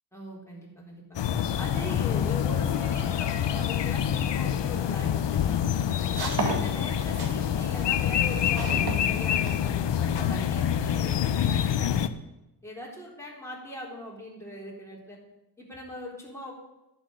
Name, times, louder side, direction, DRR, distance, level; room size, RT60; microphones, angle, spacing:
voice 1, 0.1-1.2 1.6-5.7 6.2-12.1 12.6-15.2 15.6-16.5, left 1 dB, 5° left, -4 dB, 4.1 m, -40 dB
sound 1, 1.1-12.1, left 9 dB, 75° left, 0.7 m, -26 dB
sound 2, 4.9-9.9, right 3 dB, 60° right, 2.2 m, -35 dB
11.0 x 6.3 x 9.0 m, 0.95 s
wide cardioid pair, 95°, 42 cm